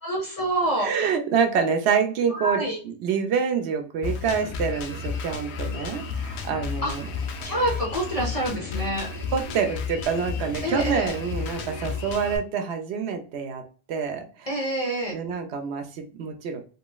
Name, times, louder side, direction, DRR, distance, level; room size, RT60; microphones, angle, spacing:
voice 1, 0.0-0.9 2.4-2.8 6.8-6.9 7.4-9.1 10.6-11.1 14.5-15.2, right 1 dB, 35° left, -4 dB, 0.9 m, -26 dB
voice 2, 0.8-7.1 7.4-7.5 9.3-13.6 13.9-14.6 15.1-16.6, right 6 dB, 75° right, 5 dB, 0.9 m, -27 dB
Drum kit, 4.0-12.4, left 5 dB, 75° left, 0.8 m, -32 dB
3.0 x 2.9 x 2.3 m, 0.38 s
omnidirectional pair, 1.1 m